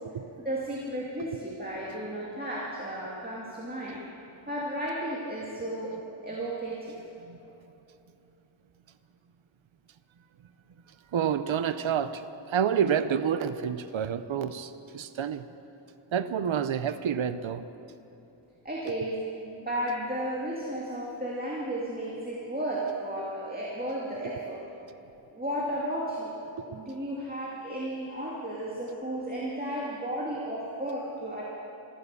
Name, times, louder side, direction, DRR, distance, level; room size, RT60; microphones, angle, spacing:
voice 1, 0.4-4.0 4.5-6.0 6.2-7.0 18.6-24.6 25.3-26.3 26.6-31.4, right 1 dB, 20° right, -5 dB, 2.3 m, -33 dB
voice 2, 11.1-15.4 16.1-17.6, right 8 dB, 70° right, 12 dB, 0.6 m, -28 dB
14.5 x 14.0 x 6.9 m, 2.9 s
wide cardioid pair, 75°, 49 cm